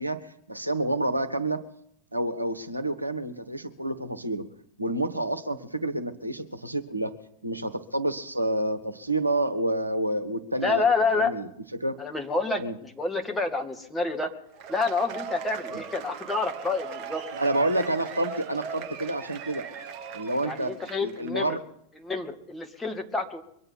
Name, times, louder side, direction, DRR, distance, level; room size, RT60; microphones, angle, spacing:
voice 1, 0.0-1.6 2.1-4.4 4.8-7.1 7.4-10.8 11.1-12.0 12.6-12.7 15.7-15.8 17.3-19.7 20.1-21.6, right 1 dB, 85° right, 9 dB, 1.1 m, -29 dB
voice 2, 10.6-11.3 12.0-14.3 14.7-17.2 20.4-21.5 22.0-23.4, left 3 dB, 10° left, 3 dB, 2.0 m, -28 dB
Cheering / Applause / Crowd, 14.5-21.3, right 6 dB, 40° right, 1.6 m, -39 dB
23.5 x 8.9 x 5.7 m, 0.71 s
figure-of-eight pair, 90°, 0 cm